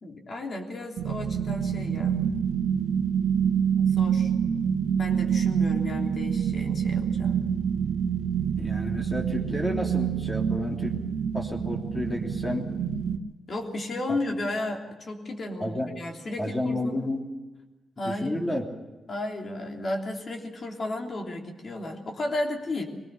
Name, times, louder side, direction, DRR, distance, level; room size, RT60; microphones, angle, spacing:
voice 1, 0.0-2.2 3.6-4.3 5.0-7.4 13.5-17.0 18.0-18.5 19.1-22.8, left 2 dB, 50° left, 1 dB, 3.4 m, -33 dB
sound 1, 1.0-13.2, right 7 dB, 90° right, 1.6 m, -26 dB
voice 2, 8.6-11.0 11.3-12.7 14.1-14.2 15.6-15.9 16.4-17.3 18.0-18.6, left 1 dB, 20° left, 0 dB, 3.3 m, -31 dB
22.5 x 19.0 x 6.6 m, 1.2 s
cardioid pair, 105°, 0 cm